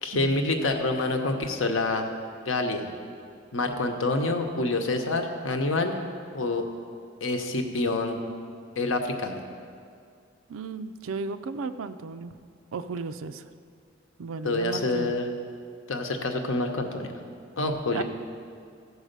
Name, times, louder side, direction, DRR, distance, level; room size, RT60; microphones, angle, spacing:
voice 1, 0.0-2.1 2.5-2.9 3.5-5.9 6.3-6.6 7.2-8.2 8.8-9.4 14.4-15.3 15.9-17.1 17.6-18.0, left 2 dB, 75° left, 5 dB, 0.9 m, -27 dB
voice 2, 10.5-12.3 12.7-13.4 14.2-15.1 17.9-18.0, right 4 dB, 85° right, 11 dB, 0.4 m, -34 dB
14.0 x 4.8 x 6.6 m, 2.3 s
head